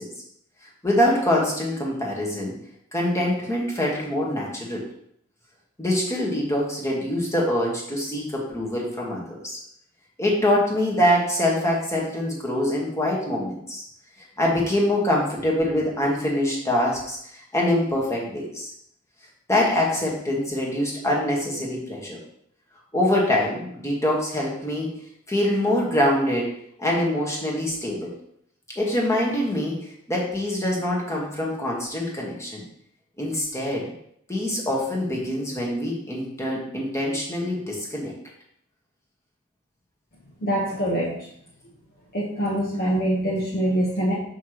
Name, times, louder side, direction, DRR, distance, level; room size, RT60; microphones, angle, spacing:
voice 1, 0.8-2.5 2.9-4.9 5.8-9.6 10.2-13.8 14.4-18.7 19.5-22.2 22.9-24.9 25.3-26.5 26.8-28.1 28.7-32.6 33.2-33.9 34.3-38.1, left 1 dB, 15° left, -3 dB, 1.5 m, -24 dB
voice 2, 40.4-41.2 42.1-44.1, right 1 dB, 45° left, -6 dB, 1.2 m, -24 dB
6.3 x 5.8 x 3.0 m, 0.70 s
head